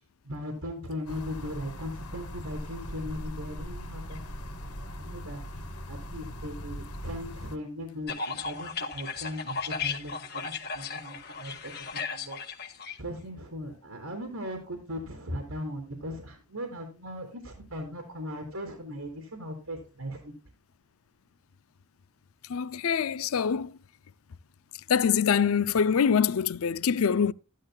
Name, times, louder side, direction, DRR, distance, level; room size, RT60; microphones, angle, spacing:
voice 1, 0.2-5.4 5.9-12.7 13.0-20.3, equal, 85° right, 3.2 m, -38 dB
sound 1, 1.1-7.6, equal, 85° left, 2.1 m, -40 dB
sound 2, 8.1-13.0, left 5 dB, 45° left, 1.7 m, -35 dB
voice 2, 22.5-23.7 24.9-27.3, left 7 dB, 65° left, 0.4 m, -24 dB
14.0 x 12.0 x 2.3 m
head